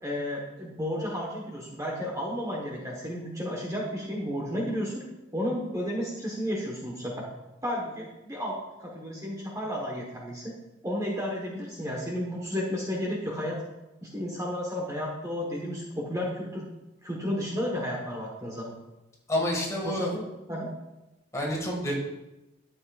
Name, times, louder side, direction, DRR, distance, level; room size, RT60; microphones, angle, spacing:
voice 1, 0.0-5.0 5.3-7.2 7.6-10.5 10.8-13.6 14.0-16.7 17.0-18.8 19.8-20.2 20.5-20.7, equal, 15° right, -2 dB, 1.2 m, -32 dB
voice 2, 19.3-20.1 21.3-21.9, left 1 dB, 15° left, -3 dB, 1.8 m, -28 dB
12.0 x 7.3 x 2.4 m, 0.98 s
head